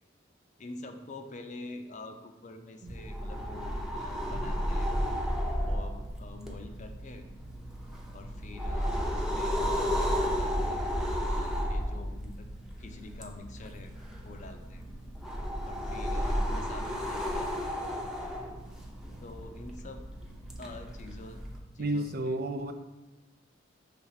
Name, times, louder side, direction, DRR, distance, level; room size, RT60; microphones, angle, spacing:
voice 1, 0.6-4.9 5.7-7.3 8.1-10.9 11.3-12.5 12.8-13.9 14.2-14.8 15.7-17.8 19.2-20.0 20.6-21.4 21.7-22.4, left 3 dB, 40° left, 6 dB, 0.6 m, -46 dB
sound 1, 2.9-21.6, equal, 5° right, 0.7 m, -33 dB
voice 2, 21.8-22.7, right 1 dB, 55° right, 7 dB, 0.5 m, -31 dB
5.7 x 3.6 x 5.6 m, 1.1 s
head